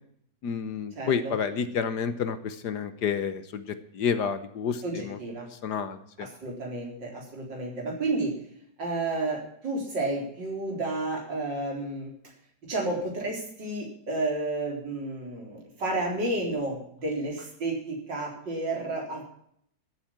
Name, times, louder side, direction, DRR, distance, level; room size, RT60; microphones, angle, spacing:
voice 1, 0.4-3.6 3.9-5.2 5.6-6.3, left 6 dB, 65° left, 11 dB, 1.5 m, -29 dB
voice 2, 1.0-1.3 4.8-5.5 6.2-8.3 8.8-12.1 12.6-19.2, right 2 dB, 75° right, -1 dB, 4.6 m, -31 dB
13.5 x 8.3 x 7.3 m, 0.68 s
omnidirectional pair, 2.0 m